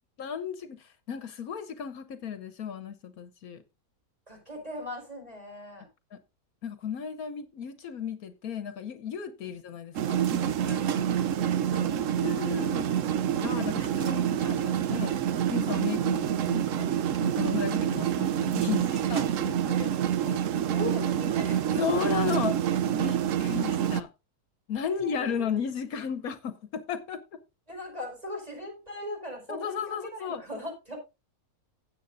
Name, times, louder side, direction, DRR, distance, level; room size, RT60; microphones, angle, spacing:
voice 1, 0.2-3.6 6.1-6.2 6.6-10.4 10.6-11.3 11.7-15.2 15.5-16.9 17.2-18.8 19.1-19.9 21.8-24.1 24.7-27.2 29.5-30.4, left 7 dB, 70° left, 1.4 m, -35 dB
voice 2, 4.3-5.9 9.4-9.6 10.4-11.1 11.7-12.1 18.7-19.1 20.2-20.4 20.7-22.0 24.8-25.5 27.7-31.0, left 1 dB, 25° right, 5.5 m, -40 dB
sound 1, 9.9-24.0, right 10 dB, 65° right, 1.0 m, -27 dB
16.5 x 8.1 x 2.6 m
omnidirectional pair, 1.6 m